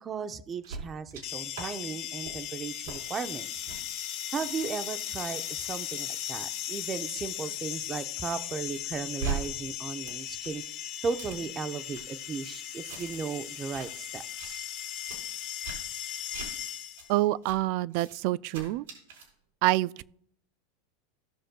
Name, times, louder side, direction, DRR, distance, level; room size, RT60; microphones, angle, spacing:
voice 1, 0.0-3.6 4.3-10.6 11.0-14.7, right 5 dB, 25° right, 0.7 m, -36 dB
sound 1, 0.6-1.2 1.5-1.7 2.0-2.3 2.8-3.0 3.6-3.8 4.4-8.0 8.4-9.4 9.6-12.0 12.4-13.3 13.5-13.9 14.2-14.5 15.0-15.2 15.6-15.8 16.3-16.5 17.0-17.1 17.4-17.6 17.9-18.1 18.5-19.3, right 5 dB, 85° right, 4.1 m, -41 dB
sound 2, 1.2-17.2, left 11 dB, 55° left, 1.9 m, -37 dB
voice 2, 17.1-18.8 19.6-20.0, right 17 dB, 60° right, 0.3 m, -27 dB
17.0 x 6.3 x 2.3 m
supercardioid pair, 120°, 0 cm